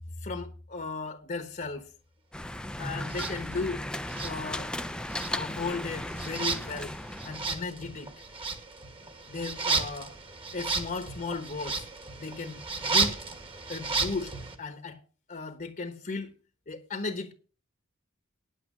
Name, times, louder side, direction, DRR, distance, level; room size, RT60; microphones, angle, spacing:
voice 1, 0.2-1.9 2.8-3.8 4.2-4.7 5.3-6.9 7.2-8.1 9.3-10.1 10.5-11.9 12.2-13.2 13.7-15.0 15.3-16.3 16.7-17.3, left 3 dB, 40° left, 1.2 m, -36 dB
sound 1, 2.3-7.5, left 1 dB, 5° left, 0.5 m, -36 dB
sound 2, 3.1-3.3 4.1-4.8 5.1-14.6, right 4 dB, 25° right, 1.5 m, -33 dB
9.9 x 8.4 x 6.1 m
head